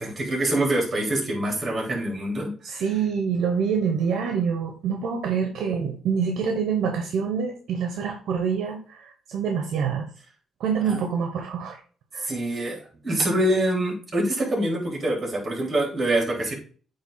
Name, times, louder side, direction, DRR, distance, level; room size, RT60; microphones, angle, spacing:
voice 1, 0.0-2.8 10.9-11.0 12.2-16.5, right 1 dB, 35° right, -2 dB, 3.8 m, -25 dB
voice 2, 2.6-10.1 10.6-11.8 12.1-12.3, right 6 dB, 75° right, 4 dB, 1.0 m, -26 dB
8.7 x 3.4 x 4.0 m, 0.42 s
cardioid pair, 90°, 0 cm